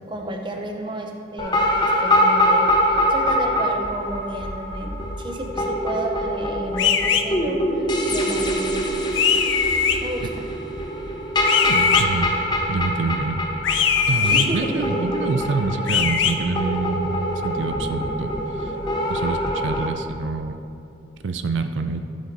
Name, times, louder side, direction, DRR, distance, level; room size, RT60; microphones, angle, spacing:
voice 1, 0.1-1.6 2.0-8.8 10.0-10.4 14.2-15.0, right 1 dB, 25° right, 2 dB, 0.7 m, -31 dB
sound 1, 1.4-19.9, equal, 25° left, 0.7 m, -24 dB
sound 2, 6.8-7.2 9.2-10.0 11.4-12.0 13.6-14.5 15.9-16.3, left 7 dB, 90° left, 0.5 m, -20 dB
voice 2, 11.6-12.3 12.7-13.4 14.1-18.3 18.6-18.7 19.1-20.6 21.2-22.0, right 3 dB, 90° right, 8 dB, 0.5 m, -26 dB
13.5 x 5.2 x 4.1 m, 2.5 s
head